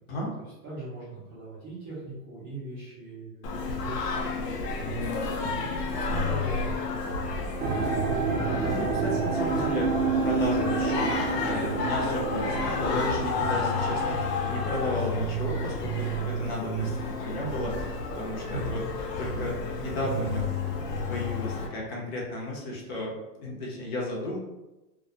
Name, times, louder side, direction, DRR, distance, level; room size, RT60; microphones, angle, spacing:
voice 1, 0.1-7.3 18.5-18.9, right 2 dB, 20° right, -9 dB, 0.5 m, -41 dB
Singing, 3.4-21.7, left 2 dB, 80° left, 0.7 m, -31 dB
sound 1, 7.6-18.8 19.0-19.7 20.3-20.4, right 5 dB, 75° right, 0.5 m, -31 dB
voice 2, 8.4-9.9 10.2-18.8 19.2-20.5 21.1-24.4, left 1 dB, 40° left, -3 dB, 0.6 m, -34 dB
2.2 x 2.2 x 2.7 m, 1.0 s
hypercardioid pair, 140°, 48 cm